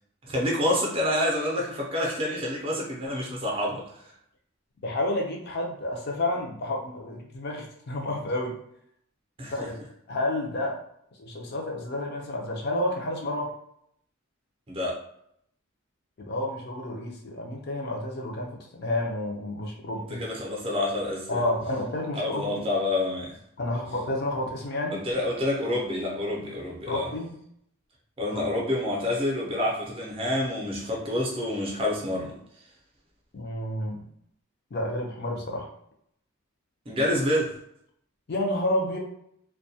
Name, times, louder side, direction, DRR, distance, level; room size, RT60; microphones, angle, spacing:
voice 1, 0.2-3.9 9.4-9.7 14.7-15.0 20.1-21.5 22.1-23.4 24.9-27.1 28.2-32.4 36.9-37.5, left 1 dB, 25° right, -2 dB, 0.5 m, -28 dB
voice 2, 4.8-8.6 9.5-9.8 10.1-10.8 11.2-13.5 16.2-20.2 21.3-22.6 23.6-25.1 26.9-27.3 28.3-28.4 33.3-34.1 34.7-35.7 38.3-39.0, left 1 dB, 50° left, 0 dB, 0.5 m, -30 dB
2.2 x 2.1 x 2.7 m, 0.73 s
head